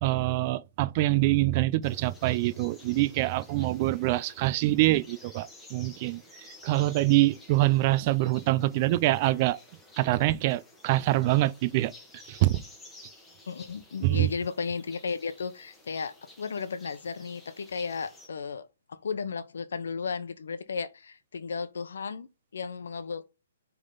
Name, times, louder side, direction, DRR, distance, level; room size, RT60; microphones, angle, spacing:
voice 1, 0.0-9.6 10.0-11.9 12.3-12.6 14.0-14.3, right 17 dB, 30° right, 0.4 m, -25 dB
sound 1, 1.8-18.3, left 2 dB, 5° left, 1.3 m, -53 dB
voice 2, 13.5-23.3, left 5 dB, 80° left, 0.9 m, -34 dB
6.6 x 3.6 x 4.0 m
hypercardioid pair, 160°, 0 cm